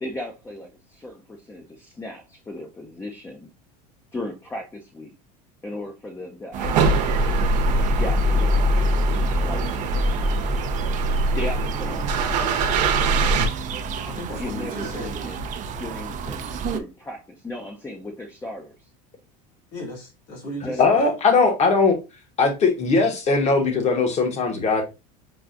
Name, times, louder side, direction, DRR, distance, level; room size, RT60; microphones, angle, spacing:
voice 1, 0.0-3.5 4.1-5.1 5.6-7.3 8.0-9.8 11.4-12.8 13.0-13.5 14.4-15.5 15.8-16.4 16.7-18.7 20.6-20.9, left 1 dB, 10° left, 0.6 m, -36 dB
sound 1, 6.5-16.8, right 5 dB, 35° right, 0.5 m, -31 dB
sound 2, 6.6-13.5, right 1 dB, 90° right, 0.9 m, -22 dB
voice 2, 14.0-15.2 19.7-21.1, left 1 dB, 85° left, 2.5 m, -36 dB
voice 3, 20.8-22.0 22.4-24.8, left 4 dB, 35° left, 1.2 m, -19 dB
6.0 x 2.4 x 2.4 m
supercardioid pair, 115°, 21 cm